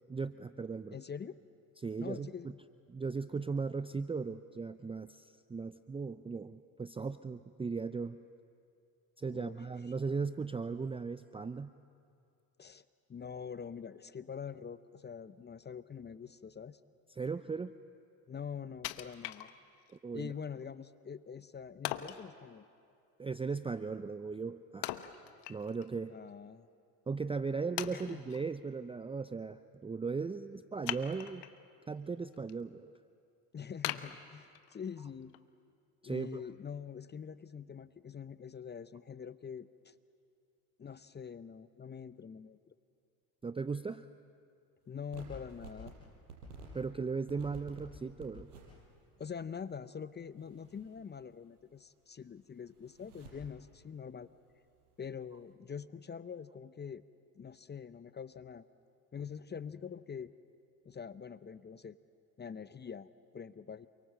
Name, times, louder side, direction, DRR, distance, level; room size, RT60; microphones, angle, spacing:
voice 1, 0.1-1.0 1.8-2.5 2.9-8.3 9.2-11.7 17.1-17.7 19.9-20.3 23.2-24.9 25.5-26.1 27.1-31.4 31.9-32.9 36.0-36.4 43.4-44.1 46.7-48.5, right 4 dB, 10° right, 12 dB, 0.6 m, -37 dB
voice 2, 0.9-1.4 2.0-2.6 9.3-9.5 12.6-12.8 13.1-16.8 18.3-19.5 20.1-22.6 26.1-26.7 27.9-28.2 33.5-35.3 36.0-39.9 40.8-42.7 44.9-45.9 49.2-54.3 55.0-57.0 57.4-58.6 59.1-60.3 60.8-62.0 62.4-63.9, left 7 dB, 20° left, 14 dB, 0.7 m, -44 dB
Wood, 18.8-20.0 20.4-20.5 21.8-22.3 24.8-25.9 26.3-26.4 27.1-27.2 27.8-28.4 30.8-31.6 32.1-32.5 32.9-33.0 33.8-34.9 35.3-35.4, left 15 dB, 60° left, 1.2 m, -40 dB
sound 1, 45.1-45.9 46.3-46.7 47.3-47.8 48.2-49.1 49.4-49.5 50.3-51.6 51.8-51.9 52.2-53.3 54.5-55.0, right 3 dB, 90° right, 6.2 m, -52 dB
29.0 x 23.5 x 7.7 m, 2.4 s
hypercardioid pair, 70°, 45 cm